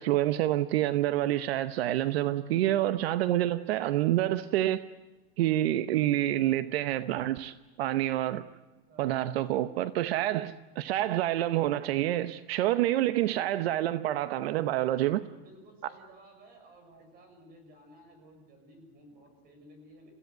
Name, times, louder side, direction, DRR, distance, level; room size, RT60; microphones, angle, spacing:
voice 1, 0.0-4.8 5.4-8.4 9.0-15.2, right 14 dB, 80° right, 1.0 m, -27 dB
voice 2, 8.9-9.4 15.4-20.1, right 1 dB, 30° right, 6.7 m, -55 dB
29.5 x 15.5 x 9.5 m
supercardioid pair, 165°, 30 cm